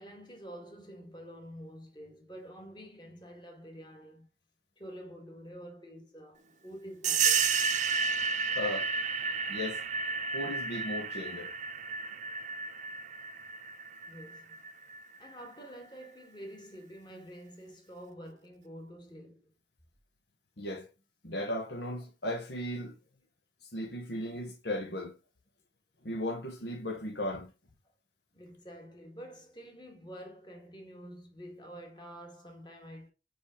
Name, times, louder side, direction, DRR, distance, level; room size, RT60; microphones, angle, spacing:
voice 1, 0.0-4.3 4.8-7.5 14.1-14.6 15.2-19.5 28.3-33.1, equal, 25° left, 1.6 m, -48 dB
sound 1, 7.0-15.3, right 5 dB, 40° right, 0.8 m, -32 dB
voice 2, 8.5-8.9 9.5-9.8 10.3-11.5 20.6-20.9 21.2-23.0 23.7-25.1 26.0-27.5, left 1 dB, 70° left, 1.1 m, -36 dB
5.2 x 4.9 x 5.0 m
head